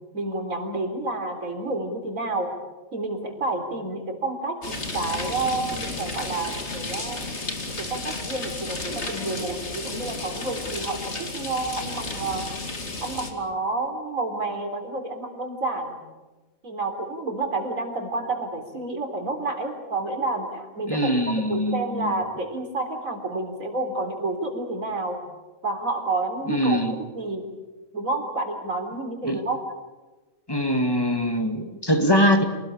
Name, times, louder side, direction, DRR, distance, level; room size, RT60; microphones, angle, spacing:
voice 1, 0.1-2.5 2.9-7.2 7.8-12.4 13.0-16.0 16.6-21.1 21.4-25.2 25.6-26.8 27.1-27.5 27.9-29.6, right 2 dB, 70° right, 5 dB, 4.2 m, -29 dB
sound 1, 4.6-13.3, left 2 dB, 55° left, 2.9 m, -33 dB
voice 2, 20.9-22.2 26.5-26.9 29.2-29.4 30.5-32.4, equal, 15° left, 6 dB, 2.3 m, -22 dB
27.5 x 19.5 x 8.7 m, 1.2 s
omnidirectional pair, 1.4 m